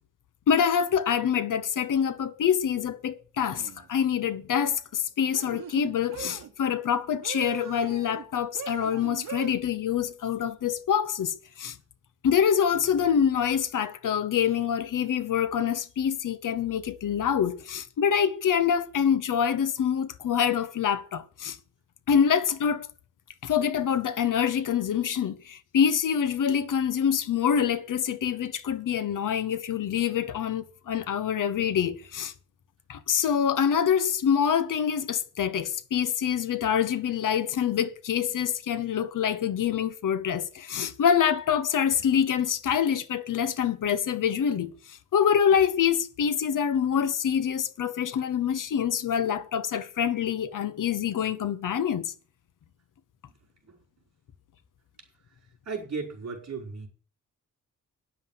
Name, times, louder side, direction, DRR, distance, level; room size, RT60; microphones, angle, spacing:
voice 1, 0.5-11.8 12.2-21.6 22.1-22.9 23.4-32.3 32.9-52.1, left 8 dB, 80° left, 0.9 m, -26 dB
sound 1, 3.6-3.9 5.3-6.5 7.2-8.3 8.6-9.5, right 9 dB, 85° right, 1.1 m, -40 dB
voice 2, 55.6-56.9, right 4 dB, 55° right, 5.1 m, -36 dB
9.8 x 7.2 x 7.5 m
wide cardioid pair, 115°, 31 cm